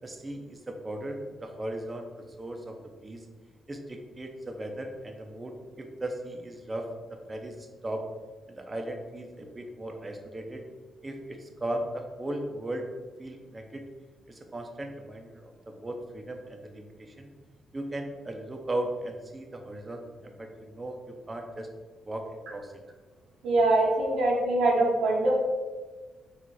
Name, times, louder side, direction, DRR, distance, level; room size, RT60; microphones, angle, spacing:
voice 1, 0.0-3.2 3.7-8.1 8.5-10.6 11.0-12.8 13.2-13.8 14.3-17.3 17.7-21.7 22.0-22.7, right 1 dB, 20° right, 3 dB, 0.6 m, -37 dB
voice 2, 23.4-25.3, right 2 dB, 85° right, -4 dB, 1.1 m, -23 dB
4.1 x 2.4 x 4.6 m, 1.3 s
cardioid pair, 110°, 0 cm